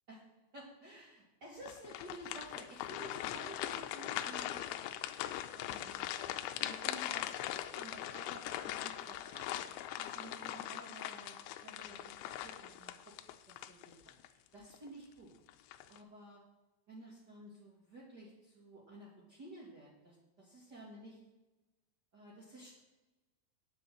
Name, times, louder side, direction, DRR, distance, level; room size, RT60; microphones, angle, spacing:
voice 1, 0.5-4.7 5.5-6.3 6.6-7.4 7.7-9.5 10.0-13.1 13.5-15.3 15.9-16.4 16.9-21.2 22.1-22.8, right 1 dB, 55° right, -5 dB, 1.1 m, -53 dB
sound 1, 1.6-14.3 14.7-14.9 15.5-16.0, left 12 dB, 85° left, 3.0 m, -41 dB
9.1 x 8.2 x 7.6 m, 1.1 s
omnidirectional pair, 5.2 m